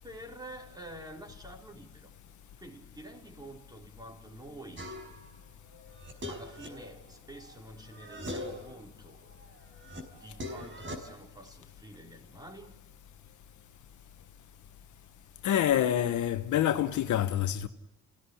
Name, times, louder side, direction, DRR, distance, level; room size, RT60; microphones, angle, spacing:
voice 1, 0.0-2.1 2.6-4.9 6.2-9.2 10.1-12.8, right 1 dB, 15° right, 4.5 m, -48 dB
sound 1, 4.8-5.3 5.7-7.6 7.9-8.7 9.2-11.0, left 1 dB, 40° right, 5.4 m, -41 dB
voice 2, 15.4-17.7, left 11 dB, 75° left, 1.3 m, -27 dB
28.5 x 17.0 x 10.0 m
cardioid pair, 90°, 30 cm